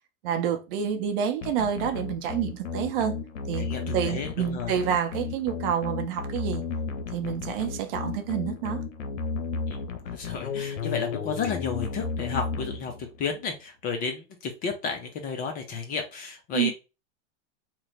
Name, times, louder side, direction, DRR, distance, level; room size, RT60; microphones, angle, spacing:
voice 1, 0.2-3.1 3.5-3.6 3.9-6.6 7.1-8.8 16.5-16.7, right 9 dB, 50° right, 0.7 m, -28 dB
sound 1, 1.4-13.3, left 5 dB, 85° left, 0.7 m, -33 dB
voice 2, 3.6-4.7 9.7-9.8 10.1-16.7, left 5 dB, 25° left, 0.4 m, -32 dB
2.9 x 2.1 x 3.9 m
hypercardioid pair, 125°, 37 cm